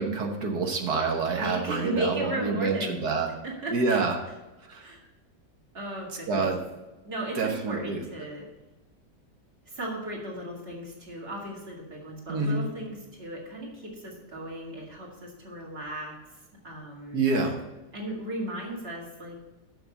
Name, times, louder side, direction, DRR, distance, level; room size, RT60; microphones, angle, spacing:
voice 1, 0.0-3.3 3.7-4.2 4.7-4.9 6.3-6.6 7.3-8.0 12.3-12.7 17.1-17.6, right 4 dB, 65° right, 3 dB, 1.6 m, -27 dB
voice 2, 1.4-3.0 3.4-4.1 4.8-5.0 5.7-6.5 7.0-8.5 9.7-16.1 16.6-17.2 17.9-19.4, right 1 dB, 35° right, -2 dB, 2.3 m, -36 dB
6.9 x 6.3 x 7.0 m, 1.1 s
omnidirectional pair, 1.9 m